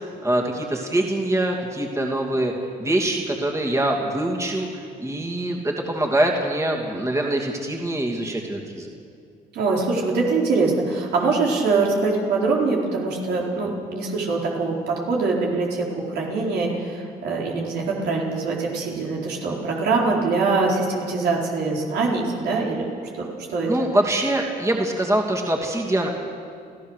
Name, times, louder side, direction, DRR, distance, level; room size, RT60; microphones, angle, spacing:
voice 1, 0.2-2.5 2.8-4.7 5.0-8.9 23.7-26.1, right 1 dB, 15° right, 1 dB, 2.7 m, -24 dB
voice 2, 9.5-22.9 23.2-23.7, right 3 dB, 80° right, -2 dB, 4.5 m, -23 dB
28.5 x 15.5 x 6.6 m, 2.4 s
cardioid pair, 100°, 17 cm